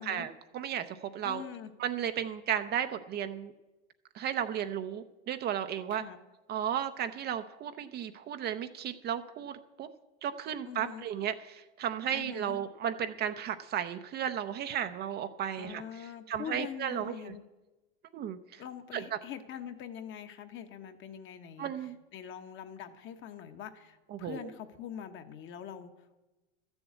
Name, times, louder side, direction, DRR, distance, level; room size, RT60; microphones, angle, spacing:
voice 1, 0.0-1.4 1.8-3.5 4.1-6.0 6.5-9.9 10.2-17.3 18.1-18.6 18.9-19.2 21.6-22.0 24.1-24.5, right 9 dB, 30° right, 9 dB, 0.6 m, -34 dB
voice 2, 1.2-1.7 5.9-6.2 10.6-11.1 12.1-12.6 15.6-17.4 18.6-25.9, left 9 dB, 35° left, 7 dB, 1.2 m, -44 dB
12.5 x 7.1 x 8.2 m, 1.1 s
hypercardioid pair, 115°, 33 cm